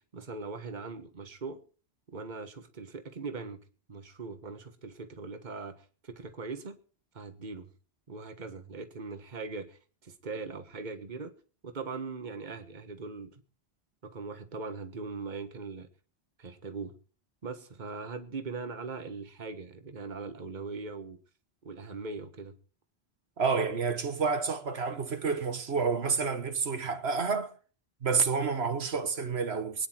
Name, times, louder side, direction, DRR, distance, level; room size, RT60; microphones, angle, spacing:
voice 1, 0.0-1.6 2.1-3.6 3.9-6.8 7.1-7.7 8.1-11.3 11.6-13.4 14.0-15.9 16.4-17.0 17.4-21.2 21.6-22.6, right 4 dB, 45° right, 1.5 m, -40 dB
voice 2, 23.4-27.5 28.0-29.9, right 5 dB, 80° right, 1.6 m, -29 dB
24.0 x 9.8 x 4.5 m
omnidirectional pair, 1.0 m